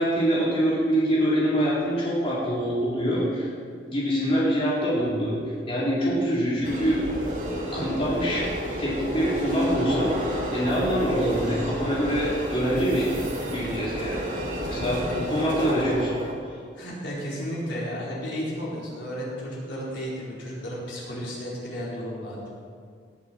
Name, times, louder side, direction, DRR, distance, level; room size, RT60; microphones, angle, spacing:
voice 1, 0.0-3.5 3.9-5.4 5.7-7.1 7.5-8.5 8.8-10.2 10.5-13.1 13.5-14.1 14.6-16.1, equal, 30° left, -8 dB, 3.8 m, -24 dB
sound 1, 6.6-16.3, equal, 45° right, 2.9 m, -31 dB
voice 2, 14.9-15.5 16.7-22.5, equal, 85° left, -6 dB, 4.5 m, -33 dB
18.5 x 11.0 x 4.6 m, 2.1 s
head